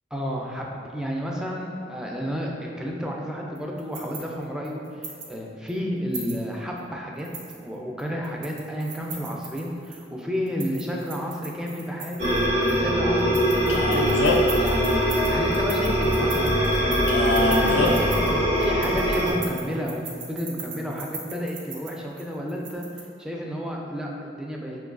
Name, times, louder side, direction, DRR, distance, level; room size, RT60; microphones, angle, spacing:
voice 1, 0.1-7.3 7.6-12.3 12.7-24.8, equal, 5° right, -1 dB, 0.3 m, -31 dB
sound 1, 3.6-5.4 5.7-5.8 6.1-6.8 7.2-10.1 10.5-12.9 13.2-23.0, right 4 dB, 90° right, 0.5 m, -40 dB
sound 2, 12.2-19.3, equal, 70° right, 1.0 m, -22 dB
Male speech man speaking, 13.7-14.6 17.1-17.9, left 3 dB, 80° left, 0.4 m, -24 dB
5.2 x 2.2 x 2.3 m, 2.3 s
head